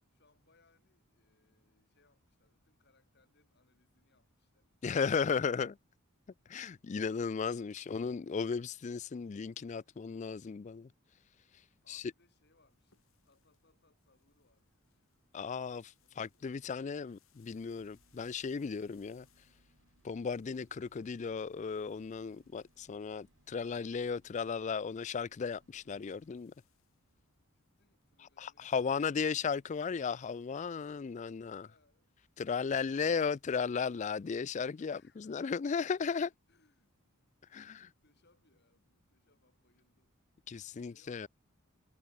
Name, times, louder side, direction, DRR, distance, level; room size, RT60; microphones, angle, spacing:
voice 1, 0.1-5.5 11.8-15.0 16.0-16.8 27.5-29.5 31.5-32.1 34.8-36.0 36.5-36.9 37.7-40.2 40.7-41.3, left 3 dB, 50° left, 4.7 m, -72 dB
voice 2, 4.8-5.8 6.5-10.9 11.9-12.0 15.3-19.3 20.0-26.5 28.4-31.7 32.4-36.3 37.5-37.9 40.5-41.3, left 5 dB, 35° left, 0.3 m, -35 dB
sound 1, 11.3-30.7, left 8 dB, 65° left, 5.0 m, -77 dB
sound 2, 17.6-26.3, right 1 dB, 60° right, 7.7 m, -71 dB
head